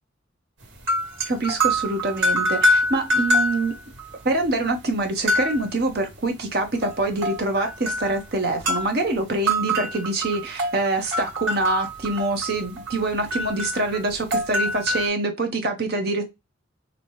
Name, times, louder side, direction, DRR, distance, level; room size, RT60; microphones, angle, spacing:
sound 1, 0.7-4.1 4.4-4.5 5.3-5.7 6.8-8.2 8.6-8.9 9.5-15.1, equal, 70° right, 1.7 m, -25 dB
voice 1, 1.3-3.7 4.2-16.2, right 2 dB, 50° right, 1.0 m, -25 dB
4.0 x 3.0 x 3.1 m
head